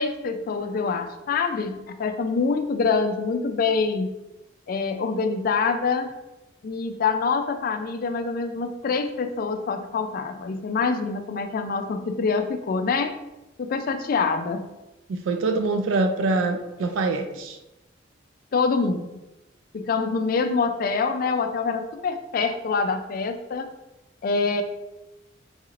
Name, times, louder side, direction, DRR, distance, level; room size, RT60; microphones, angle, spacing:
voice 1, 0.0-4.1 4.7-6.1 6.6-13.1 13.6-14.7 18.5-19.1 19.7-23.7 24.2-24.6, left 4 dB, 50° left, 7 dB, 0.3 m, -25 dB
voice 2, 15.1-17.6, right 3 dB, 90° right, 6 dB, 0.3 m, -24 dB
3.9 x 3.1 x 2.4 m, 0.98 s
head